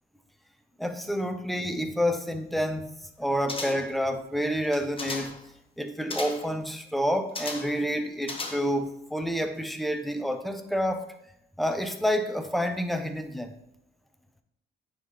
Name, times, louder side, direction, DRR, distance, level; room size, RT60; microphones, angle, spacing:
voice 1, 0.8-2.9 3.2-5.3 5.8-11.1 11.6-13.5, equal, ahead, 7 dB, 0.7 m, -28 dB
sound 1, 3.5-4.0 4.6-5.4 6.1-6.5 7.4-7.8 8.2-8.9 9.2-9.3, left 3 dB, 25° left, 1.1 m, -36 dB
9.2 x 3.7 x 3.3 m, 0.78 s
cardioid pair, 90°, 20 cm